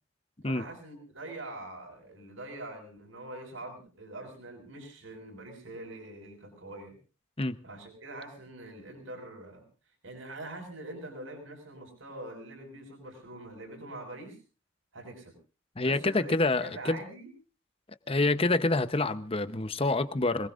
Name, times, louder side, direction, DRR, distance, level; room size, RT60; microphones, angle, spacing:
voice 1, 0.5-7.0 7.6-9.6 10.0-14.4 14.9-15.4 15.8-17.3, right 1 dB, 75° right, 5.8 m, -44 dB
voice 2, 15.8-17.0 18.1-20.5, left 2 dB, 30° left, 0.9 m, -27 dB
26.0 x 19.5 x 2.6 m
head